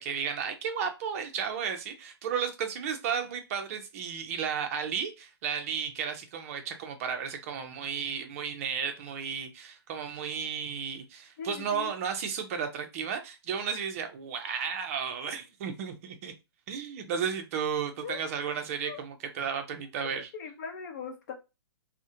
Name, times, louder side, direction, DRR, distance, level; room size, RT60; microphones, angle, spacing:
voice 1, 0.0-16.3 16.7-20.3, right 7 dB, 35° right, 0.5 m, -33 dB
voice 2, 11.4-11.9 18.0-18.2 18.8-19.0 19.7-19.8 20.3-21.3, left 6 dB, 40° left, 0.8 m, -40 dB
2.3 x 2.1 x 2.7 m
hypercardioid pair, 155°, 14 cm